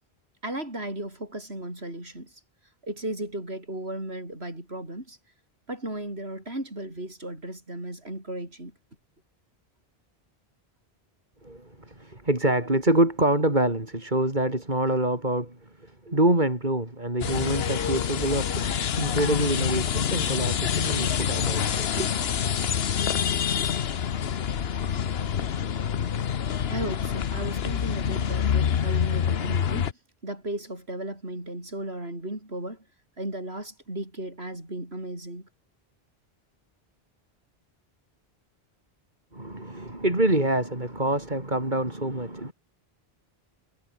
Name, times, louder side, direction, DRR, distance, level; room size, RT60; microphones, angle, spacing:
voice 1, 0.4-2.4 2.8-5.2 5.7-8.8 26.7-29.9 30.2-32.8 33.2-35.5, right 1 dB, 80° right, 8.2 m, -35 dB
voice 2, 11.4-22.1 39.3-42.5, right 1 dB, 45° right, 5.2 m, -26 dB
sound 1, 17.2-29.9, left 8 dB, 75° left, 1.2 m, -26 dB
omnidirectional pair, 1.1 m